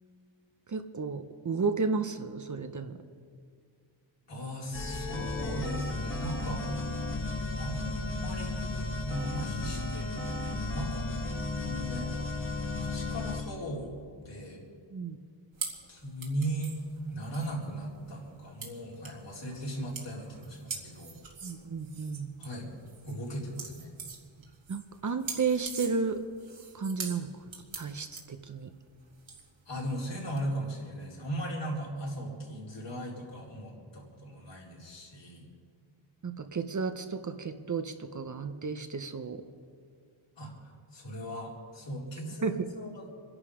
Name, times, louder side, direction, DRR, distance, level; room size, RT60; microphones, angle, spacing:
voice 1, 0.7-3.0 11.6-11.7 14.9-15.2 21.4-22.3 24.7-26.2 26.7-27.3 27.8-28.7 36.2-39.4 42.4-42.7, right 5 dB, 40° right, 8 dB, 0.9 m, -33 dB
voice 2, 4.3-6.7 7.6-11.1 11.5-12.2 12.7-13.9 14.2-14.6 15.9-16.8 17.1-21.2 22.4-22.7 23.0-23.9 29.7-35.5 40.4-43.0, right 1 dB, 60° left, -4 dB, 4.3 m, -38 dB
sound 1, 4.7-13.4, left 2 dB, 25° left, 1.7 m, -34 dB
sound 2, 15.5-30.4, right 5 dB, 70° right, 2.4 m, -44 dB
25.5 x 11.0 x 5.0 m, 2.1 s
wide cardioid pair, 95°, 48 cm